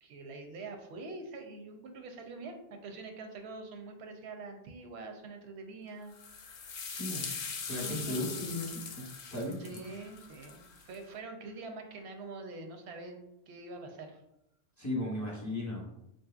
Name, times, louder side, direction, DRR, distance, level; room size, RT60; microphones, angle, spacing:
voice 1, 0.0-7.0 7.8-8.6 9.1-9.3 9.6-13.2 13.5-14.2, right 3 dB, 85° right, 5 dB, 0.8 m, -45 dB
sound 1, 6.1-11.0, left 5 dB, 60° left, 0.6 m, -41 dB
voice 2, 6.9-7.2 7.7-9.0 9.3-9.6 14.8-15.8, left 1 dB, 20° left, -4 dB, 0.8 m, -36 dB
3.8 x 2.7 x 2.3 m, 0.81 s
omnidirectional pair, 1.1 m